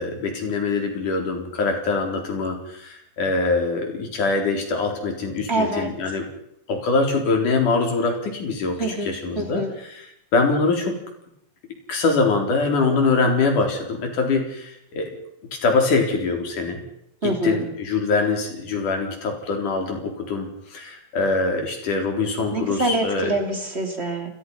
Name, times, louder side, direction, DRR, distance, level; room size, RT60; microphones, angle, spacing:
voice 1, 0.0-6.2 6.7-9.6 9.9-10.1 10.3-11.0 11.9-15.1 15.6-16.8 17.2-23.3, left 3 dB, 60° left, 3 dB, 5.5 m, -23 dB
voice 2, 5.5-5.9 8.8-9.7 17.2-17.6 22.5-24.3, right 2 dB, 20° right, 4 dB, 3.3 m, -25 dB
29.5 x 21.5 x 5.7 m, 0.78 s
omnidirectional pair, 4.1 m